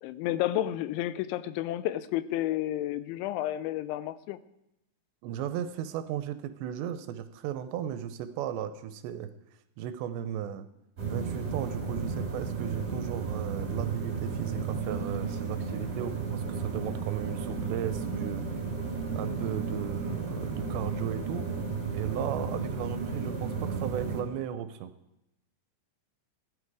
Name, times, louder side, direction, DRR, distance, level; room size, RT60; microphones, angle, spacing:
voice 1, 0.0-4.4, left 13 dB, 85° left, 15 dB, 3.0 m, -31 dB
voice 2, 5.2-9.3 9.8-10.7 11.1-18.5 19.2-21.5 21.9-24.9, right 10 dB, 80° right, 10 dB, 2.8 m, -36 dB
sound 1, 11.0-24.2, right 5 dB, 25° right, 2.1 m, -33 dB
16.0 x 12.0 x 4.8 m, 0.87 s
omnidirectional pair, 5.3 m